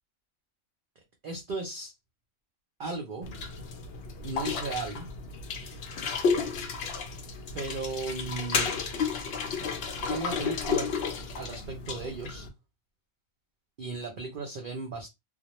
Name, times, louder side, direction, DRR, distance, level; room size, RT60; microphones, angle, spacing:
voice 1, 1.2-1.9 2.8-3.3 4.2-5.1 7.5-8.7 10.1-10.9 11.4-12.5 13.8-15.1, right 3 dB, 50° right, 0.7 m, -35 dB
sound 1, 3.2-12.5, left 5 dB, 60° left, 0.7 m, -32 dB
2.2 x 2.1 x 3.0 m
omnidirectional pair, 1.4 m